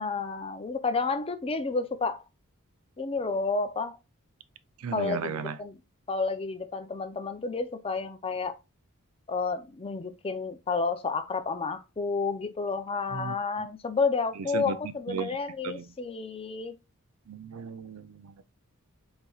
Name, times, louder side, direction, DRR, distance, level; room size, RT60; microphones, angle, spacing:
voice 1, 0.0-2.2 3.0-4.0 4.9-5.8 6.1-8.6 9.3-16.7, left 4 dB, 25° left, 0.5 m, -30 dB
voice 2, 4.8-5.6 13.1-13.7 14.4-15.4 15.6-15.9 17.3-18.4, right 6 dB, 70° right, 0.4 m, -36 dB
4.3 x 3.9 x 2.3 m
head